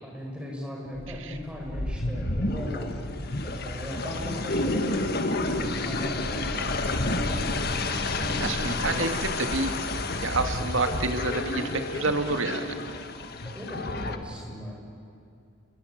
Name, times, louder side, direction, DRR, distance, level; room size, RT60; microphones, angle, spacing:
voice 1, 0.0-3.0 3.4-8.6 8.9-9.3 13.4-14.7, left 1 dB, 5° right, -2 dB, 6.2 m, -38 dB
sound 1, 0.9-14.2, left 2 dB, 50° left, 1.6 m, -30 dB
voice 2, 8.4-9.7 10.2-12.8, right 3 dB, 75° right, 6 dB, 2.0 m, -28 dB
29.0 x 21.5 x 9.3 m, 2.5 s
head